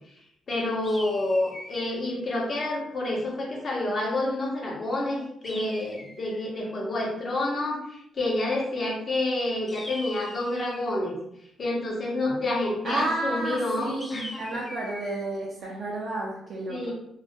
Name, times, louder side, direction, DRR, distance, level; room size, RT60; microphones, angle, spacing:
voice 1, 0.5-11.2 11.6-14.6 16.7-16.9, left 2 dB, 45° left, -2 dB, 0.8 m, -28 dB
sound 1, 0.8-2.0 5.4-6.5 9.7-10.9 14.0-15.2, left 1 dB, 15° left, 0.4 m, -42 dB
voice 2, 12.8-16.9, right 2 dB, 55° right, -4 dB, 0.4 m, -31 dB
2.3 x 2.1 x 2.6 m, 0.77 s
cardioid pair, 90°, 0 cm